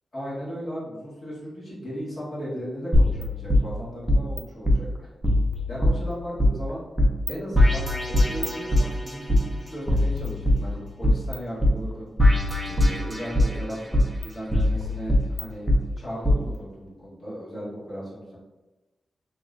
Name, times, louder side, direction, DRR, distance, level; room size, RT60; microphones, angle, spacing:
voice 1, 0.1-4.9 5.7-6.8 7.3-12.1 12.7-15.6 16.0-18.4, equal, 45° left, -8 dB, 1.4 m, -36 dB
sound 1, 2.9-4.4 4.6-4.8 5.2-6.5 7.0-7.3 7.5-9.4 9.9-11.3 11.6-11.7 12.2-13.6 13.9-15.8 16.2-16.4, left 1 dB, ahead, 0.5 m, -21 dB
3.1 x 2.9 x 2.4 m, 1.1 s
wide cardioid pair, 130°, 0 cm